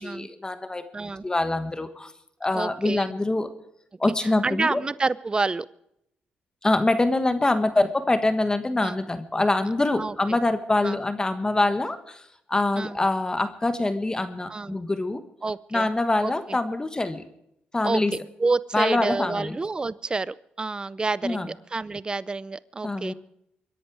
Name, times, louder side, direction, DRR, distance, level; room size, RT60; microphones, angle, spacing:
voice 1, 0.0-2.1 2.4-3.5 4.0-4.8 6.6-15.2 15.7-17.2 17.7-18.1 18.7-19.6 21.2-21.5 22.8-23.1, left 2 dB, 20° left, 10 dB, 1.3 m, -25 dB
voice 2, 0.9-1.3 2.5-3.0 4.2-5.7 8.8-8.9 10.0-10.1 10.8-11.0 12.8-13.0 14.5-14.8 15.4-15.9 16.2-16.3 17.8-23.1, right 3 dB, 25° right, 19 dB, 0.5 m, -28 dB
24.5 x 11.0 x 4.8 m, 0.77 s
cardioid pair, 75°, 4 cm